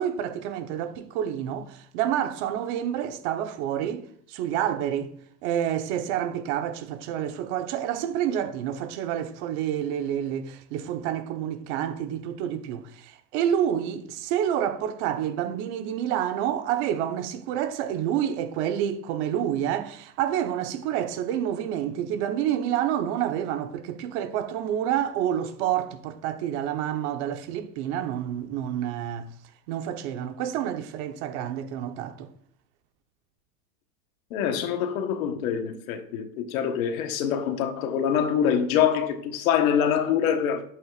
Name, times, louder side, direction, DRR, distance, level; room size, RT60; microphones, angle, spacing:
voice 1, 0.0-5.1 5.4-29.3 29.7-32.3, right 10 dB, 45° right, 1.1 m, -28 dB
voice 2, 34.3-40.7, left 8 dB, 60° left, 1.3 m, -25 dB
11.0 x 7.9 x 2.5 m
supercardioid pair, 150°, 46 cm